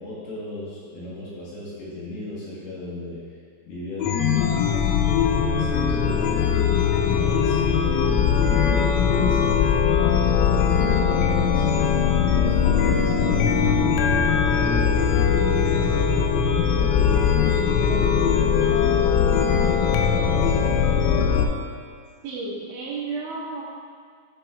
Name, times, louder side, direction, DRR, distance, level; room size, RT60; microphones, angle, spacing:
voice 1, 0.0-3.2 3.7-4.9 5.3-6.8 7.1-11.8 12.1-16.3 16.8-21.3, left 2 dB, 65° left, -7 dB, 2.8 m, -36 dB
Chime, 4.0-21.4, left 7 dB, 85° left, 3.2 m, -20 dB
voice 2, 22.2-23.6, right 3 dB, 75° right, -8 dB, 3.0 m, -32 dB
10.0 x 7.4 x 2.4 m, 2.1 s
omnidirectional pair, 6.0 m